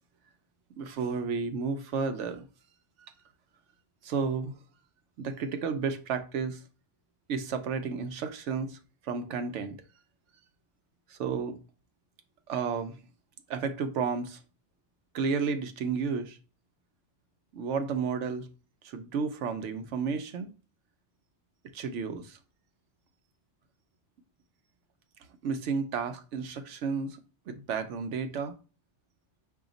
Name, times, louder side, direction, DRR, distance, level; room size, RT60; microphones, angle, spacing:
voice 1, 0.8-2.4 4.0-4.5 5.2-6.6 7.3-8.8 9.0-9.8 11.1-11.6 12.5-13.0 13.5-14.4 15.1-16.4 17.5-18.5 18.8-20.5 21.7-22.4 25.4-27.2 27.5-28.5, right 5 dB, 75° right, 1.0 m, -32 dB
4.9 x 2.8 x 3.9 m
omnidirectional pair, 1.2 m